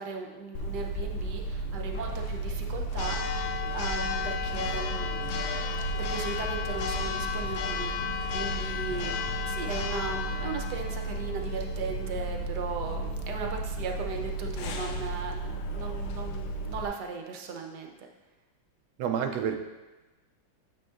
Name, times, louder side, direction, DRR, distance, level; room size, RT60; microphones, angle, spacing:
voice 1, 0.0-5.2 6.0-9.2 9.4-18.1, right 4 dB, 65° right, 3 dB, 1.2 m, -37 dB
Church bell, 0.5-16.9, left 1 dB, 90° left, 1.5 m, -32 dB
voice 2, 19.0-19.6, right 8 dB, 80° right, 4 dB, 0.9 m, -28 dB
9.0 x 6.9 x 2.4 m, 1.1 s
omnidirectional pair, 2.2 m